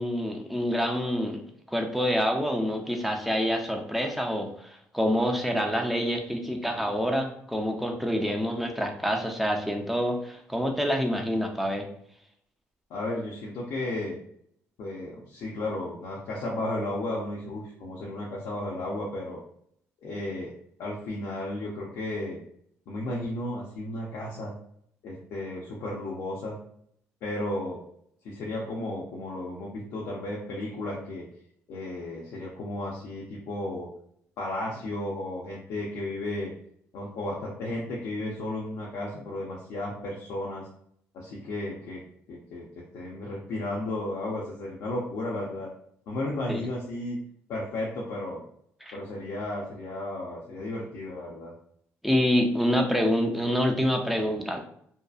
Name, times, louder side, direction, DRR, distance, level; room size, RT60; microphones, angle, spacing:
voice 1, 0.0-1.4 1.7-11.9 46.5-46.6 48.8-48.9 52.0-54.7, equal, ahead, 2 dB, 0.5 m, -27 dB
voice 2, 12.9-14.2 14.8-19.4 20.0-20.5 20.8-22.4 22.9-24.5 25.0-26.6 27.2-27.8 28.2-31.2 31.7-33.9 34.4-36.5 36.9-40.7 41.1-42.0 42.3-45.7 46.1-47.2 47.5-48.4 48.9-51.5, left 1 dB, 75° left, -4 dB, 0.6 m, -34 dB
2.7 x 2.2 x 2.3 m, 0.67 s
supercardioid pair, 70°, 6 cm